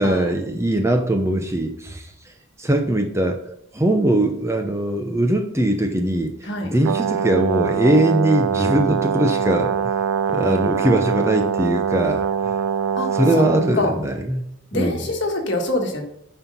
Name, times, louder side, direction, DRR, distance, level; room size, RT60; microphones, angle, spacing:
voice 1, 0.0-2.1 2.6-3.4 3.7-6.3 6.6-9.7 10.3-12.6 13.1-15.1, right 1 dB, 15° right, 4 dB, 0.6 m, -21 dB
Brass instrument, 6.8-13.8, right 7 dB, 85° right, 0.4 m, -23 dB
voice 2, 14.7-16.0, left 1 dB, 55° left, 2 dB, 1.6 m, -24 dB
9.6 x 4.5 x 5.4 m, 0.74 s
head